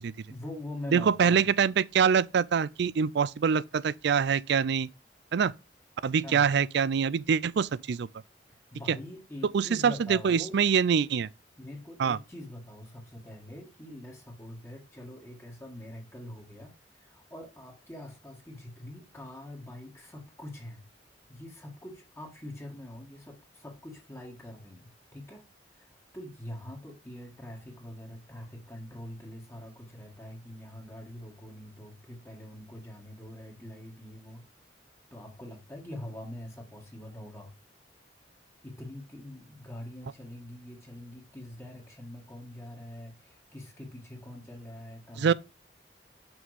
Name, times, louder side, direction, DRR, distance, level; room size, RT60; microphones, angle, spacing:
voice 1, 0.3-1.4 6.2-6.5 8.5-10.6 11.6-20.9 21.3-25.4 25.7-34.5 35.1-37.5 38.6-45.3, left 1 dB, 15° left, 1.6 m, -44 dB
voice 2, 0.9-4.9 5.3-5.5 6.0-8.1 9.5-11.3 12.0-12.2 45.2-45.3, right 6 dB, 65° right, 0.4 m, -25 dB
6.1 x 5.5 x 4.8 m
head